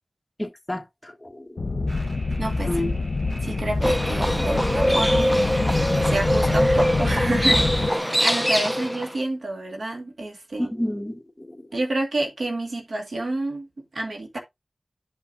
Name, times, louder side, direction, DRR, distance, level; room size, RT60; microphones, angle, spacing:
voice 1, 0.4-1.9 2.6-2.9 10.6-11.7, left 1 dB, 15° left, 1.2 m, -31 dB
sound 1, 1.6-7.9, left 3 dB, 70° left, 0.7 m, -25 dB
sound 2, 1.9-8.0, right 2 dB, 60° right, 3.3 m, -40 dB
voice 2, 2.4-2.9 3.4-5.3 6.0-10.7 11.7-14.4, right 2 dB, 80° right, 1.6 m, -29 dB
Livestock farm animals working animals, 3.8-9.1, equal, 5° right, 0.5 m, -23 dB
10.5 x 5.6 x 2.5 m
wide cardioid pair, 55°, 0 cm